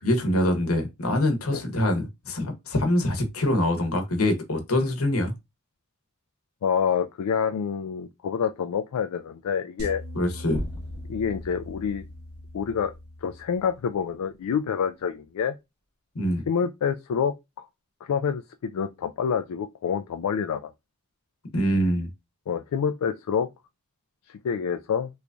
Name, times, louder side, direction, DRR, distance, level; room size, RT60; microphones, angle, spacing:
voice 1, 0.0-5.3 10.1-10.6 16.1-16.4 21.5-22.1, left 1 dB, 70° left, 1.0 m, -24 dB
voice 2, 6.6-10.0 11.1-12.0 12.5-12.9 13.2-15.5 16.5-17.7 18.0-20.7 22.5-23.5 24.3-25.1, left 7 dB, 85° left, 0.4 m, -27 dB
sound 1, 9.8-14.1, left 1 dB, 75° right, 0.9 m, -41 dB
sound 2, 10.5-14.8, equal, 25° left, 0.9 m, -42 dB
3.0 x 2.6 x 3.4 m
head